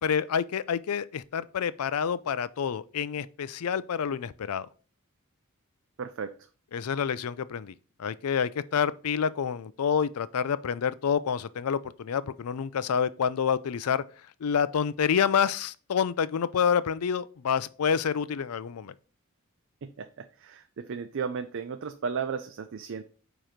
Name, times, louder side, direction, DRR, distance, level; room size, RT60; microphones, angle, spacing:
voice 1, 0.0-4.7 6.7-7.7 8.0-14.0 14.4-18.9, left 7 dB, 90° left, 0.4 m, -28 dB
voice 2, 6.0-6.4 19.8-23.0, right 6 dB, 60° right, 0.5 m, -35 dB
9.1 x 3.0 x 5.0 m
head